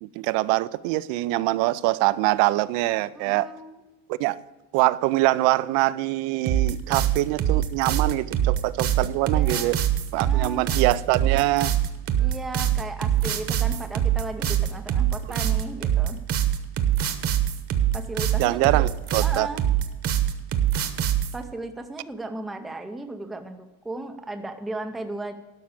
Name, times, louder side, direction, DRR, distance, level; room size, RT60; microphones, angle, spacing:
voice 1, 0.0-3.5 4.1-4.4 4.7-9.8 10.1-11.7 18.4-19.5, right 18 dB, 75° right, 0.7 m, -24 dB
voice 2, 3.1-3.8 9.3-9.7 10.1-10.7 12.2-16.2 17.9-18.9 19.2-19.6 21.3-25.3, right 2 dB, ahead, 0.4 m, -35 dB
sound 1, 6.5-21.3, right 10 dB, 30° right, 1.0 m, -23 dB
12.0 x 6.0 x 8.5 m
cardioid pair, 175°, 44 cm